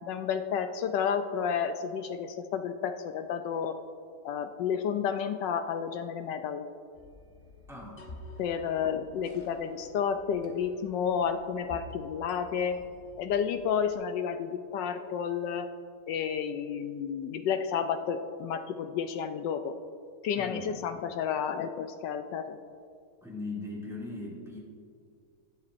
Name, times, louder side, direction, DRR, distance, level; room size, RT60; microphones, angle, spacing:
voice 1, 0.0-3.8 4.2-6.6 8.4-12.8 13.2-15.7 16.1-19.7 20.2-22.6, left 7 dB, 75° left, 8 dB, 1.1 m, -31 dB
sound 1, 6.9-14.0, left 1 dB, 35° left, 0.9 m, -50 dB
voice 2, 7.7-8.0 20.3-20.8 23.2-24.6, left 2 dB, ahead, -5 dB, 2.1 m, -39 dB
18.5 x 7.3 x 2.6 m, 2.3 s
omnidirectional pair, 2.3 m